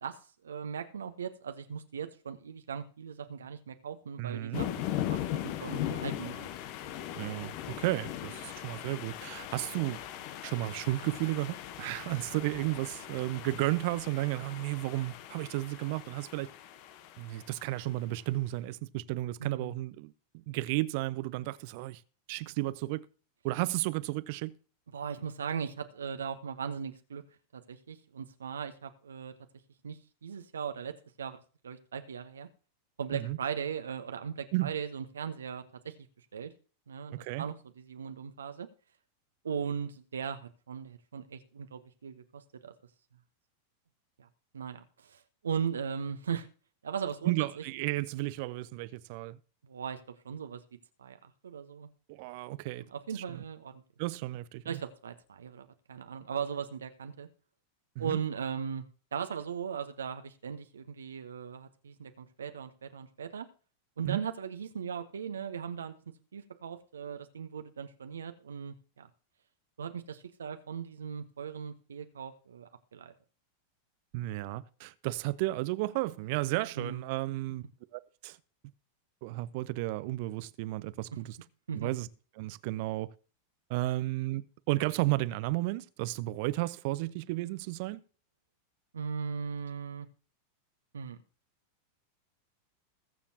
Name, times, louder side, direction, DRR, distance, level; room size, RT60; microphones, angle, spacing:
voice 1, 0.0-5.0 5.3-6.5 19.4-19.7 24.9-27.2 27.5-29.3 29.8-31.4 31.6-32.5 33.0-35.9 36.3-36.5 36.9-38.7 39.4-42.7 44.2-44.3 44.5-46.5 46.8-47.3 49.6-50.0 50.2-50.6 51.0-51.9 52.7-53.8 54.6-57.3 58.0-58.8 59.1-63.5 64.0-65.9 66.3-69.1 69.8-73.1 76.8-77.0 81.7-81.9 88.9-90.1 90.9-91.2, right 7 dB, 70° right, 1.0 m, -38 dB
voice 2, 4.2-4.7 7.2-10.0 10.4-16.5 17.2-22.0 22.3-23.1 23.4-24.5 33.1-33.4 34.5-34.7 37.1-37.4 47.2-49.4 52.1-52.9 53.1-53.4 54.0-54.8 58.0-58.2 64.0-64.2 74.1-77.6 77.9-78.4 79.2-81.4 81.7-82.1 82.4-83.1 83.7-88.0, right 18 dB, 50° right, 0.6 m, -33 dB
sound 1, 4.5-17.9, left 12 dB, 45° left, 1.0 m, -39 dB
21.0 x 7.1 x 2.9 m
figure-of-eight pair, 90°, 0 cm